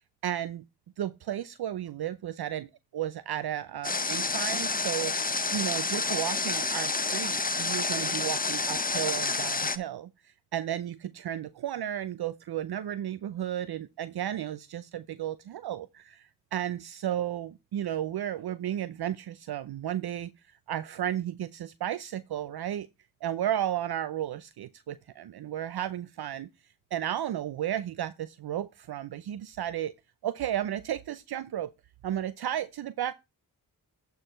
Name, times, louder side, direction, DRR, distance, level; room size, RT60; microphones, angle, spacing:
voice 1, 0.2-0.6 1.0-22.9 23.2-26.5 26.9-29.9 30.2-31.7 32.0-33.1, right 11 dB, 65° right, 0.6 m, -33 dB
Water, 3.8-9.8, left 3 dB, 20° left, 0.9 m, -29 dB
11.5 x 4.8 x 4.4 m
supercardioid pair, 45°, 42 cm